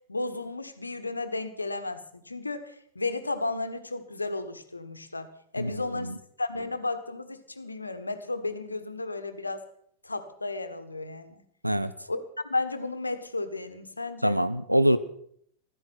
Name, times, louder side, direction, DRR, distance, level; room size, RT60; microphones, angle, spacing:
voice 1, 0.1-9.6 10.0-11.4 12.1-14.4, left 2 dB, 80° left, 10 dB, 1.4 m, -33 dB
voice 2, 5.6-6.1 11.6-11.9 14.2-15.0, equal, 90° right, 13 dB, 0.8 m, -24 dB
15.0 x 13.5 x 6.1 m, 0.65 s
figure-of-eight pair, 90°, 0 cm